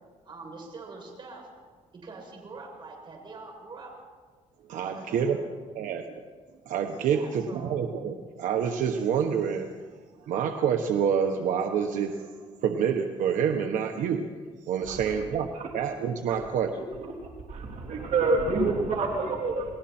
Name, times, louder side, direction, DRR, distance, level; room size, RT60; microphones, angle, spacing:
voice 1, 0.2-1.5 1.9-3.9 4.8-5.4 7.0-7.7 18.3-18.8 19.2-19.4, right 3 dB, 40° right, 0 dB, 7.0 m, -44 dB
voice 2, 4.7-5.4 5.7-6.1 6.7-9.7 10.3-12.2 12.6-14.2 14.6-16.8, right 7 dB, 85° right, 4 dB, 1.3 m, -27 dB
voice 3, 14.9-15.3 15.5-15.7 16.3-16.4 16.8-16.9 17.5-19.8, right 3 dB, 65° right, -1 dB, 3.5 m, -28 dB
29.5 x 20.0 x 4.4 m, 1.5 s
cardioid pair, 120°, 13 cm